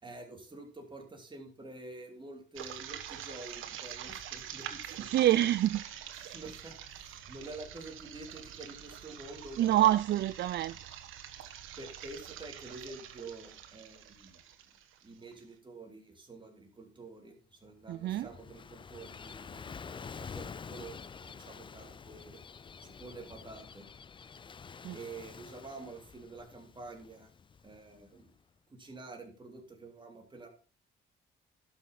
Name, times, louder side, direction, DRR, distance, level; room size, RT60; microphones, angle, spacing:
voice 1, 0.0-5.2 6.1-10.2 11.8-14.4 15.0-22.4 22.8-23.9 24.9-27.3 27.6-28.3 28.7-30.5, right 2 dB, 25° right, 3.4 m, -48 dB
sound 1, 2.6-15.4, right 10 dB, 85° right, 1.4 m, -46 dB
voice 2, 5.1-5.8 9.6-10.7 17.9-18.3 24.8-25.0, right 13 dB, 60° right, 0.4 m, -26 dB
Gull seagull / Waves surf, 17.8-28.3, left 6 dB, 25° left, 0.4 m, -48 dB
12.0 x 6.2 x 5.7 m
cardioid pair, 90°, 20 cm